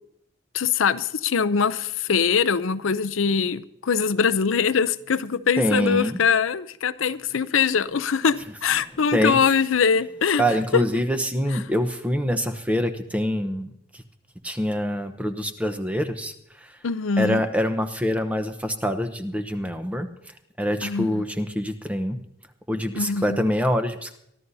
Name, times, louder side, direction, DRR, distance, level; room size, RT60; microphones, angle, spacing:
voice 1, 0.5-10.4 16.8-17.4 20.8-21.2 23.0-23.4, left 6 dB, 90° left, 0.6 m, -22 dB
voice 2, 5.6-6.2 9.1-9.4 10.4-14.0 14.4-16.7 17.2-20.1 20.6-22.2 22.7-24.2, equal, 5° right, 0.9 m, -25 dB
24.0 x 13.0 x 2.7 m
head